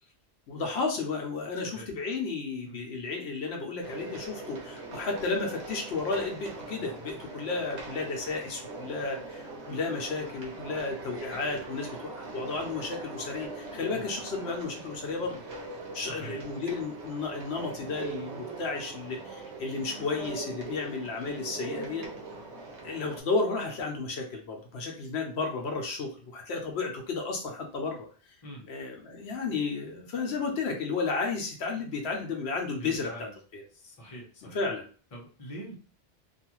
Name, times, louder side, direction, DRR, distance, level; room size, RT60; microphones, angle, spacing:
voice 1, 0.5-15.4 15.9-22.1 22.8-28.1 28.7-33.6 34.5-34.8, left 4 dB, 75° left, 2 dB, 0.8 m, -33 dB
sound 1, 3.8-23.2, right 3 dB, 85° right, 1.1 m, -41 dB
voice 2, 16.0-16.4 28.4-28.7 32.8-33.3 33.7-34.6 35.1-35.8, equal, 35° left, -2 dB, 0.8 m, -44 dB
2.6 x 2.3 x 2.9 m, 0.40 s
omnidirectional pair, 1.1 m